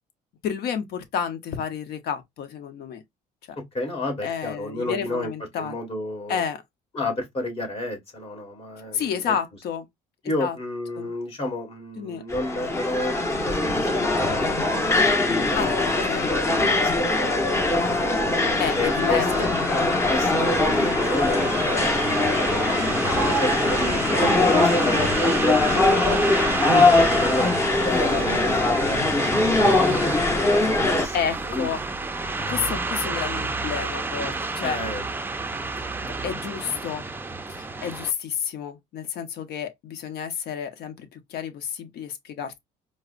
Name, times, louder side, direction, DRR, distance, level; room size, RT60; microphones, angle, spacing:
voice 1, 0.4-3.0 4.2-5.8 6.3-6.6 8.9-9.9 10.4-10.6 11.0-11.1 12.0-12.2 15.6-16.3 18.6-19.3 19.6-19.7 20.3-20.4 30.9-31.8 32.5-34.8 36.0-37.0 37.5-42.6, left 7 dB, 70° left, 0.8 m, -30 dB
voice 2, 3.7-5.3 5.6-6.4 6.9-9.3 10.2-15.4 15.8-17.9 18.8-19.5 20.1-23.0 23.3-25.7 26.1-27.5 27.8-29.4 29.7-30.1 30.6-31.1 31.4-31.7 34.6-35.0, left 1 dB, 35° left, 1.6 m, -32 dB
sound 1, 12.3-31.1, left 2 dB, 15° left, 0.8 m, -21 dB
sound 2, 18.4-38.1, right 3 dB, 10° right, 0.4 m, -31 dB
4.7 x 2.1 x 2.4 m
cardioid pair, 110°, 17 cm